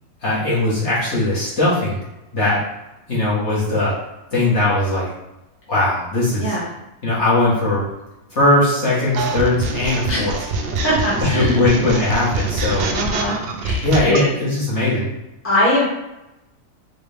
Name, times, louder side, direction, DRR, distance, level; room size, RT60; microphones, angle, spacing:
voice 1, 0.2-2.0 2.3-2.6 3.1-3.9 4.3-5.1 5.7-6.6 7.0-7.8 8.3-10.3 11.2-12.9 13.8-15.1, left 2 dB, 50° left, -9 dB, 1.8 m, -19 dB
sound 1, 9.1-14.3, right 2 dB, 90° right, 0.5 m, -25 dB
voice 2, 10.1-10.4 10.8-11.6 12.9-13.4 13.6-14.3 15.4-15.8, left 1 dB, 10° left, -8 dB, 1.3 m, -21 dB
4.7 x 2.6 x 3.4 m, 0.95 s
omnidirectional pair, 1.6 m